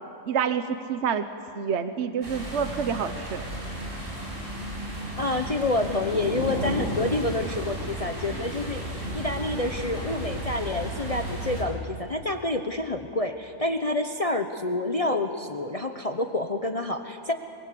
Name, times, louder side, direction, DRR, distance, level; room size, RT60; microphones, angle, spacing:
voice 1, 0.3-1.2 1.6-3.4, right 7 dB, 60° right, 9 dB, 1.2 m, -27 dB
sound 1, 2.2-11.6, right 1 dB, 45° right, 6.9 m, -33 dB
voice 2, 5.2-17.3, left 2 dB, 30° left, 6 dB, 0.9 m, -28 dB
26.0 x 23.0 x 8.4 m, 2.8 s
omnidirectional pair, 1.4 m